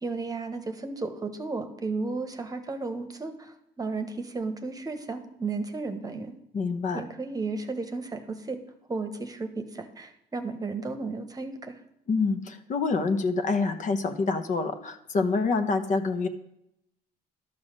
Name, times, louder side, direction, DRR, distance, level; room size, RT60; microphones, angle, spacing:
voice 1, 0.0-6.3 6.9-8.6 8.9-11.8, right 3 dB, 20° right, 7 dB, 1.1 m, -34 dB
voice 2, 6.5-7.0 12.1-16.3, left 4 dB, 45° left, 7 dB, 1.0 m, -26 dB
12.0 x 5.7 x 6.5 m, 0.81 s
cardioid pair, 110°, 17 cm